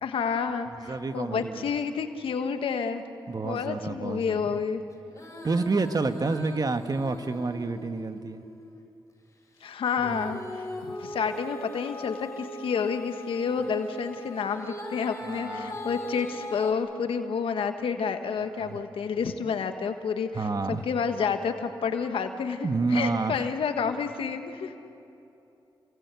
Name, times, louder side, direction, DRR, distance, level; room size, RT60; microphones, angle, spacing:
voice 1, 0.0-3.0 3.4-4.8 9.6-24.8, left 6 dB, 80° left, 7 dB, 1.4 m, -29 dB
voice 2, 0.9-1.7 3.3-4.5 5.4-8.4 10.0-10.3 15.3-15.8 18.5-18.8 20.3-20.8 22.6-23.5, right 3 dB, 45° right, 8 dB, 1.6 m, -29 dB
Female singing, 5.1-8.8 10.0-16.7, left 1 dB, 35° left, 6.6 m, -40 dB
28.5 x 22.0 x 8.4 m, 2.8 s
cardioid pair, 50°, 9 cm